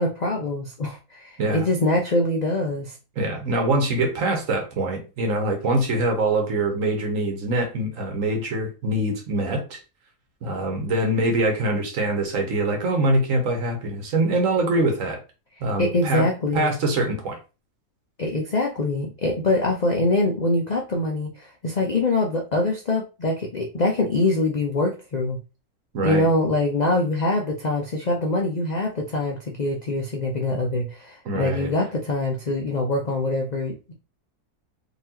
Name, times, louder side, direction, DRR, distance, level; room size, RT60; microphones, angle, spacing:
voice 1, 0.0-3.0 15.8-16.8 18.2-25.4 26.0-33.9, left 2 dB, 65° left, 1 dB, 0.4 m, -24 dB
voice 2, 3.2-9.8 10.4-15.2 15.6-16.3 16.5-17.4 25.9-26.3 31.2-31.7, right 2 dB, 60° right, 3 dB, 1.3 m, -24 dB
4.0 x 2.9 x 2.8 m, 0.31 s
omnidirectional pair, 1.6 m